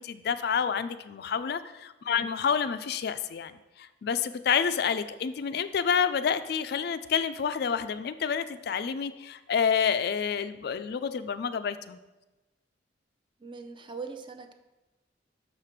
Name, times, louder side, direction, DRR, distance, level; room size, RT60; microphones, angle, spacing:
voice 1, 0.0-12.0, left 7 dB, 60° left, 11 dB, 0.4 m, -29 dB
voice 2, 13.4-14.5, right 4 dB, 25° right, 8 dB, 0.6 m, -41 dB
6.7 x 4.9 x 5.8 m, 1.1 s
head